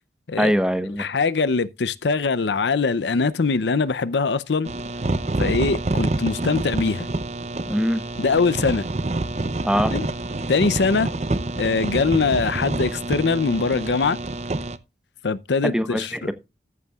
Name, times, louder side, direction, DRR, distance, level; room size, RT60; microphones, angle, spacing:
voice 1, 0.4-1.0 7.7-8.0 9.6-9.9 15.6-16.0 16.3-16.4, equal, 5° right, 1.0 m, -21 dB
voice 2, 1.0-4.7 5.4-7.1 8.2-8.9 9.9-10.1 10.5-11.1 11.6-14.2 15.2-16.3, left 4 dB, 80° left, 0.6 m, -22 dB
sound 1, 4.7-14.8, right 2 dB, 40° right, 0.6 m, -27 dB
14.0 x 8.3 x 2.4 m
head